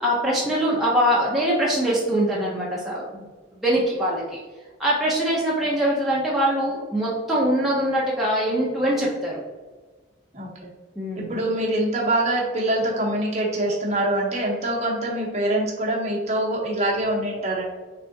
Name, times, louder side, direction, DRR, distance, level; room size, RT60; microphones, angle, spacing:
voice 1, 0.0-3.2 3.5-4.4 4.8-9.4 11.0-11.3, equal, ahead, -7 dB, 0.5 m, -23 dB
voice 2, 11.2-17.8, right 1 dB, 35° right, -4 dB, 0.8 m, -24 dB
3.5 x 3.3 x 2.6 m, 1.3 s
head